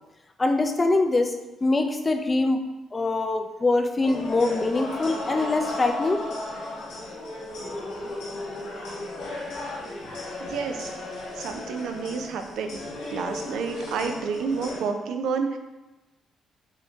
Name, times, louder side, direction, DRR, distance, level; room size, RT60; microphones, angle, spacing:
voice 1, 0.4-2.6 2.9-6.2, left 2 dB, 25° left, 6 dB, 0.4 m, -23 dB
sound 1, 4.0-14.8, left 2 dB, 85° left, 1.0 m, -35 dB
voice 2, 10.4-10.9 11.4-12.8 13.1-15.6, right 5 dB, 80° right, 6 dB, 0.4 m, -29 dB
5.5 x 2.1 x 2.7 m, 1.1 s
cardioid pair, 80°, 0 cm